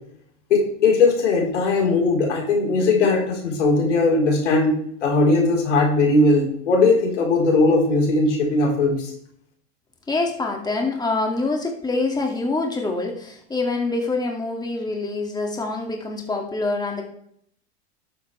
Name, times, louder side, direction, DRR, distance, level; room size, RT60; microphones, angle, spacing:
voice 1, 0.5-9.1, left 3 dB, 85° left, 0 dB, 4.2 m, -19 dB
voice 2, 10.1-17.1, left 3 dB, 10° left, 2 dB, 2.2 m, -25 dB
11.5 x 8.9 x 3.3 m, 0.66 s
hypercardioid pair, 110°, 35 cm